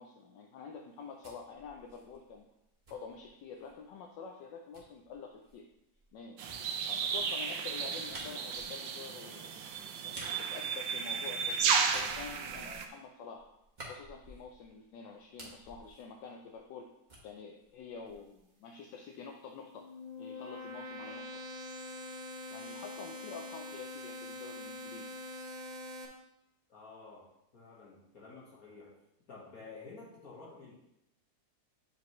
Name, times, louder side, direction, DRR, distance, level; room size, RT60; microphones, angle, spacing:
voice 1, 0.0-2.4 2.9-5.7 6.1-9.5 10.0-13.5 13.9-16.9 17.2-19.9 20.2-21.3 22.5-25.2, left 5 dB, 80° left, 2 dB, 1.3 m, -48 dB
sound 1, 0.8-3.8 4.7-11.4 11.8-14.8 15.1-16.8 17.1-18.4, right 1 dB, 25° right, 1.3 m, -53 dB
sound 2, 6.4-12.9, right 6 dB, 80° right, 1.4 m, -34 dB
sound 3, 19.6-26.1, left 1 dB, 55° right, 0.4 m, -44 dB
voice 2, 26.7-27.3 27.5-28.9 29.3-30.7, left 4 dB, 50° left, -6 dB, 1.9 m, -51 dB
8.5 x 5.0 x 3.0 m, 0.85 s
omnidirectional pair, 2.0 m